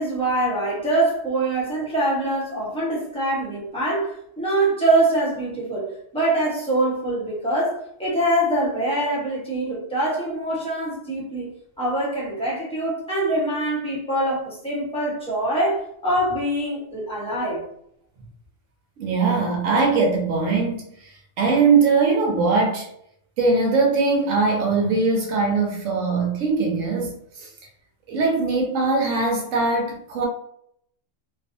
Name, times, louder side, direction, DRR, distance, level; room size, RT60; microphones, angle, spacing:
voice 1, 0.0-17.6, right 1 dB, 5° left, -6 dB, 0.8 m, -24 dB
voice 2, 19.0-22.9 23.4-27.5 28.1-30.3, right 4 dB, 75° right, 0 dB, 1.0 m, -21 dB
2.5 x 2.3 x 2.5 m, 0.70 s
omnidirectional pair, 1.3 m